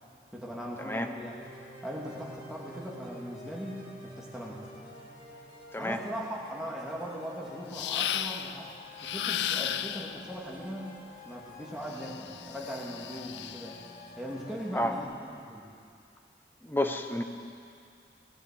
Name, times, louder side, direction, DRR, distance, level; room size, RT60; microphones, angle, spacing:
voice 1, 0.3-1.5 1.8-4.7 5.8-8.7 9.0-11.0 11.3-13.8 14.2-15.7, equal, 5° right, -5 dB, 2.3 m, -39 dB
sound 1, 1.3-15.0, left 1 dB, 40° left, 4.4 m, -49 dB
sound 2, 7.7-8.6 9.0-10.2 11.9-13.8, left 10 dB, 80° left, 0.4 m, -34 dB
voice 2, 16.6-17.2, left 1 dB, 10° left, 5 dB, 0.8 m, -30 dB
17.0 x 9.9 x 8.3 m, 2.3 s
head